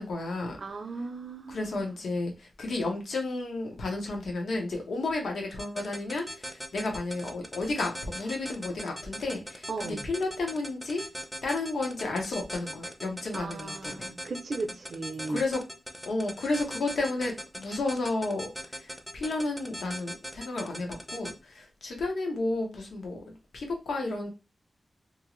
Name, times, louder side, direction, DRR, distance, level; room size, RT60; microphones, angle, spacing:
voice 1, 0.0-0.6 1.5-11.0 11.4-14.1 15.3-15.6 16.1-24.3, left 2 dB, 80° left, 0.8 m, -32 dB
voice 2, 0.6-1.9 9.7-10.0 13.3-15.4, right 3 dB, 55° right, 0.5 m, -36 dB
sound 1, 5.5-21.3, equal, ahead, 0.5 m, -39 dB
2.6 x 2.4 x 3.0 m
wide cardioid pair, 105°, 0 cm